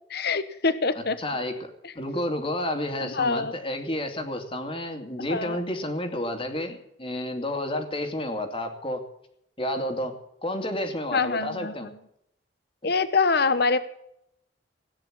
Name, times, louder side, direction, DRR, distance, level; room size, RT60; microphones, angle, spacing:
voice 1, 0.1-1.2 1.8-1.9 3.0-3.5 5.2-5.6 11.1-11.7 12.8-13.8, left 4 dB, 65° left, 13 dB, 1.1 m, -25 dB
voice 2, 1.0-9.0 9.6-10.2 10.4-11.9 12.8-12.9, left 1 dB, 30° left, 5 dB, 2.6 m, -31 dB
17.5 x 9.9 x 7.6 m, 0.75 s
head